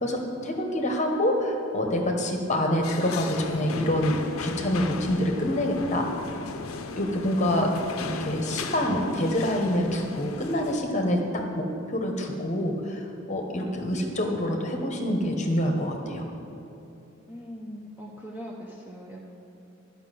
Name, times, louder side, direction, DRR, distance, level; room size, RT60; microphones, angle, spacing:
voice 1, 0.0-6.1 7.0-7.7 8.0-16.2, left 1 dB, 35° left, 2 dB, 1.0 m, -26 dB
sound 1, 2.8-10.8, left 4 dB, 85° left, 0.6 m, -36 dB
voice 2, 17.3-19.3, equal, 10° right, -4 dB, 0.8 m, -41 dB
11.5 x 5.7 x 7.6 m, 2.9 s
head